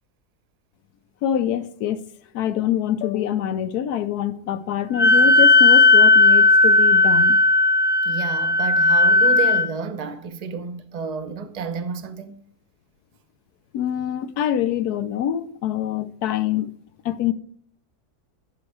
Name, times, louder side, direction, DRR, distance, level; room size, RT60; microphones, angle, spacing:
voice 1, 1.2-2.0 2.3-7.4 13.7-17.3, left 10 dB, 85° left, 1.2 m, -25 dB
Wind instrument woodwind instrument, 5.0-9.7, left 3 dB, 55° left, 0.4 m, -15 dB
voice 2, 8.0-12.4, right 5 dB, 35° right, 0.6 m, -30 dB
10.5 x 6.0 x 4.8 m
omnidirectional pair, 1.6 m